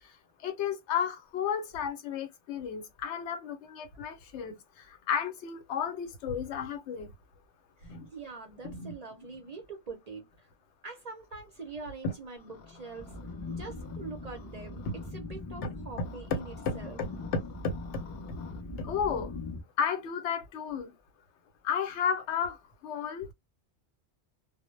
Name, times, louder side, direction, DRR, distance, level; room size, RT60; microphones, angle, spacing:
voice 1, 0.4-4.6 4.9-7.1 7.9-8.1 8.6-8.9 12.0-12.1 15.6-15.7 16.7-18.0 18.8-19.3 19.8-20.9 21.6-23.3, left 7 dB, 90° left, 0.9 m, -33 dB
voice 2, 7.8-10.5 10.8-13.1 13.5-14.8 15.1-17.0, right 4 dB, 50° right, 0.5 m, -44 dB
sound 1, 12.4-15.1 16.0-18.6, left 5 dB, 60° left, 0.8 m, -54 dB
sound 2, 13.0-19.6, left 3 dB, 40° left, 0.4 m, -41 dB
2.1 x 2.0 x 3.0 m
omnidirectional pair, 1.1 m